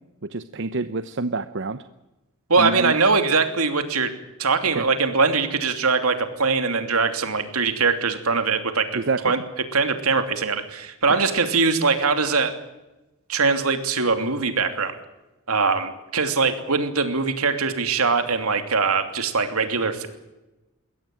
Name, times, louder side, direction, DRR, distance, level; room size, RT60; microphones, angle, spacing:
voice 1, 0.2-1.8 2.6-2.9 4.7-4.9 8.9-9.3 11.1-11.2, right 3 dB, 55° right, 11 dB, 0.8 m, -27 dB
voice 2, 2.5-4.1 4.4-9.4 9.7-12.5 13.3-14.9 15.5-20.1, right 4 dB, 75° right, 7 dB, 2.9 m, -22 dB
22.0 x 17.0 x 8.9 m, 1.0 s
head